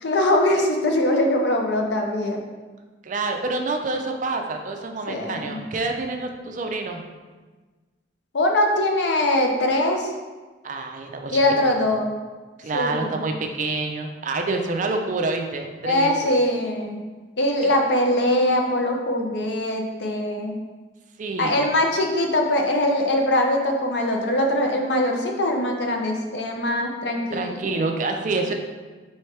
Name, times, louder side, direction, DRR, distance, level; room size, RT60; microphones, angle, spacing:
voice 1, 0.0-2.4 5.1-5.6 8.3-10.1 11.3-12.1 12.7-13.3 15.8-17.0 17.4-20.6 21.4-27.5, left 1 dB, 65° left, 2 dB, 0.6 m, -22 dB
voice 2, 3.0-7.0 10.6-11.4 12.6-16.1 17.6-17.7 21.2-21.5 27.3-28.5, right 3 dB, 40° right, 4 dB, 0.4 m, -27 dB
4.4 x 3.5 x 3.3 m, 1.3 s
head